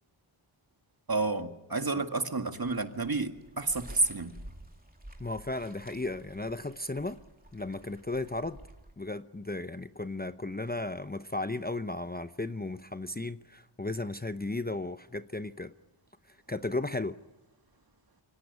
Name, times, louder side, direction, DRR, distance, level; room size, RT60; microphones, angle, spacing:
voice 1, 1.1-4.3, right 3 dB, 45° right, 6 dB, 2.0 m, -30 dB
sound 1, 2.5-8.9, right 1 dB, 15° right, 2.9 m, -51 dB
voice 2, 5.2-7.2 7.5-8.6 9.0-15.7 16.3-17.2, left 2 dB, 20° left, 11 dB, 0.8 m, -35 dB
24.5 x 18.0 x 9.5 m, 1.1 s
wide cardioid pair, 45°, 50 cm